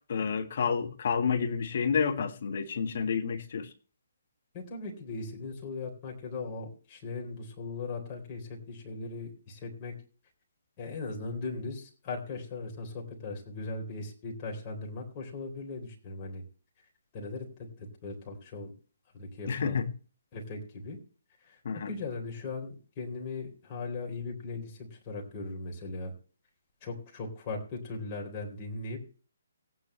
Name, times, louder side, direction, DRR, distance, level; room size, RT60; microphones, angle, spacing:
voice 1, 0.1-3.7 19.5-19.9 21.6-21.9, left 6 dB, 45° left, 5 dB, 1.7 m, -29 dB
voice 2, 4.5-10.0 10.8-16.4 17.1-18.7 19.1-19.9 20.3-21.0 21.4-26.1 26.8-29.0, left 3 dB, 25° left, 0 dB, 3.9 m, -39 dB
17.5 x 9.7 x 3.2 m, 0.37 s
figure-of-eight pair, 135°, 0 cm